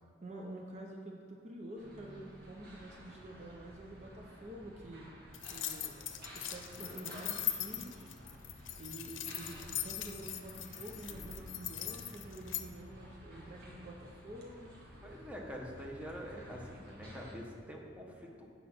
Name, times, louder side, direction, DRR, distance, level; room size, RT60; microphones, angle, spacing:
voice 1, 0.2-5.1 5.5-6.0 6.3-8.1 8.8-14.8, right 1 dB, 40° right, 0 dB, 0.7 m, -48 dB
sound 1, 1.8-17.4, equal, 55° right, 1.5 m, -52 dB
sound 2, 5.3-12.6, left 12 dB, 90° left, 0.6 m, -40 dB
voice 2, 15.0-18.5, equal, 5° right, -2 dB, 1.0 m, -45 dB
8.3 x 5.3 x 6.0 m, 2.1 s
head